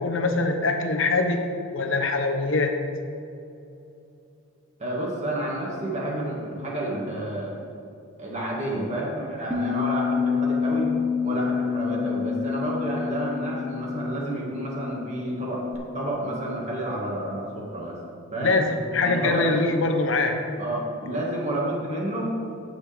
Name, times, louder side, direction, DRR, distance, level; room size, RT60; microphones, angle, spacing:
voice 1, 0.0-3.0 18.4-20.4, left 3 dB, 60° left, 5 dB, 0.9 m, -23 dB
voice 2, 4.8-7.6 8.2-10.9 11.2-15.7 15.9-18.0 18.3-18.6 19.0-19.5 20.6-22.4, right 1 dB, 30° right, -4 dB, 2.0 m, -30 dB
Bass guitar, 9.5-15.8, left 6 dB, 10° right, 0.8 m, -28 dB
16.5 x 6.5 x 3.5 m, 2.7 s
head